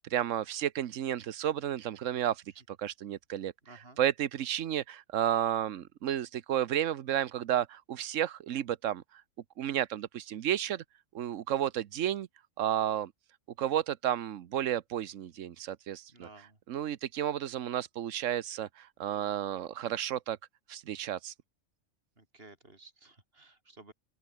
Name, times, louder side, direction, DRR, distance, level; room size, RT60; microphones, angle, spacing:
voice 1, 0.0-3.5 4.0-9.0 9.6-10.8 11.1-12.3 12.6-13.1 13.6-16.3 16.7-20.4 20.7-21.3, right 11 dB, 65° right, 1.1 m, -32 dB
voice 2, 3.6-4.0 16.1-16.6 22.2-23.9, right 2 dB, 45° right, 4.8 m, -54 dB
open air
omnidirectional pair, 1.4 m